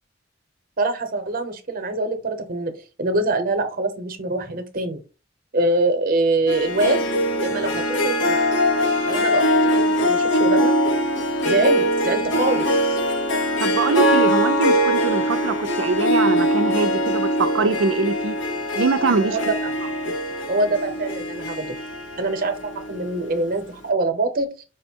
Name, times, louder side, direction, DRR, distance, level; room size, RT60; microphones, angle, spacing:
voice 1, 0.8-2.7 3.0-5.0 5.5-7.1 7.4-8.4 9.1-10.7 11.4-13.0 19.2-19.7 20.5-21.8 22.2-24.6, right 2 dB, 50° right, 0.8 m, -24 dB
Harp, 6.5-23.3, equal, 70° left, 0.8 m, -22 dB
voice 2, 13.6-18.4 18.8-19.4 20.1-20.2, right 4 dB, 75° right, 0.5 m, -23 dB
4.9 x 2.1 x 4.4 m
head